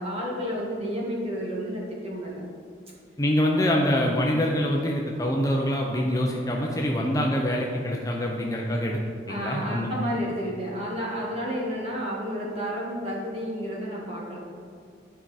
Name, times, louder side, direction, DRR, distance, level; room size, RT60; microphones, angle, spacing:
voice 1, 0.0-2.5 3.4-3.5 9.3-14.4, equal, 35° right, -4 dB, 1.7 m, -31 dB
voice 2, 3.2-9.0 9.3-9.9, left 1 dB, 20° left, -1 dB, 0.6 m, -25 dB
11.5 x 4.6 x 4.2 m, 2.3 s
head